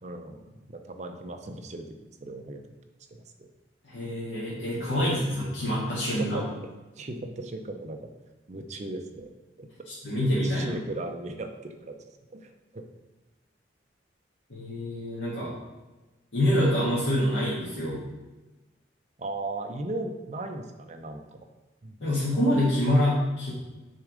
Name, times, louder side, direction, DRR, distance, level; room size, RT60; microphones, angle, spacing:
voice 1, 0.0-2.7 3.1-3.5 4.7-5.4 6.1-6.5 7.0-8.1 8.5-9.3 9.6-9.7 10.4-12.0 12.3-12.8 19.2-21.5 21.8-22.0, right 2 dB, 35° right, 6 dB, 0.5 m, -37 dB
voice 2, 3.8-6.4 9.9-10.7 14.5-15.5 16.3-18.0 22.0-23.5, left 1 dB, 80° left, -9 dB, 1.6 m, -26 dB
6.6 x 3.6 x 4.9 m, 1.1 s
head